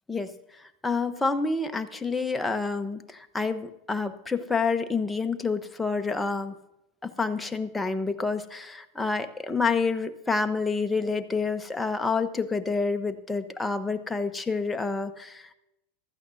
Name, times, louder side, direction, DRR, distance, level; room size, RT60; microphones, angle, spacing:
voice 1, 0.8-6.5 7.0-15.5, left 4 dB, 10° left, 8 dB, 0.9 m, -28 dB
15.5 x 12.5 x 2.7 m, 0.87 s
hypercardioid pair, 95°, 0 cm